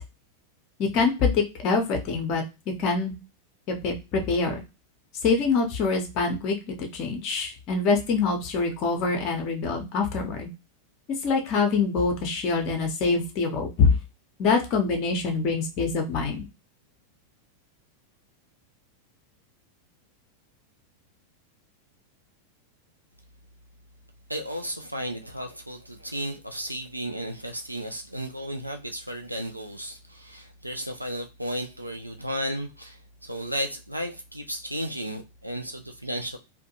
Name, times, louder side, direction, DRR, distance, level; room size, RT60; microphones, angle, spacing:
voice 1, 0.8-2.4 2.8-3.1 3.7-4.6 5.2-10.5 11.2-14.0 14.4-16.4, left 4 dB, 40° left, 3 dB, 0.6 m, -25 dB
voice 2, 24.3-36.4, equal, 85° right, 5 dB, 0.3 m, -34 dB
2.5 x 2.2 x 2.7 m, 0.27 s
figure-of-eight pair, 90°, 0 cm